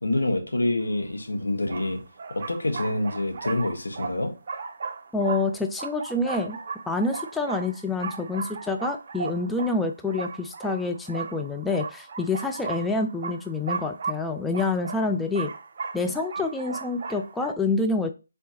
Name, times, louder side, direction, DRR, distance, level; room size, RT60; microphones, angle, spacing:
voice 1, 0.0-2.0 2.3-4.3, left 2 dB, 90° left, 4 dB, 1.3 m, -26 dB
sound 1, 0.9-1.0 1.7-17.5, right 5 dB, 45° right, 0.7 m, -36 dB
voice 2, 5.1-6.6 6.9-15.5 15.9-18.1, left 3 dB, 5° left, 6 dB, 0.3 m, -27 dB
4.2 x 3.6 x 2.9 m, 0.29 s
figure-of-eight pair, 160°, 0 cm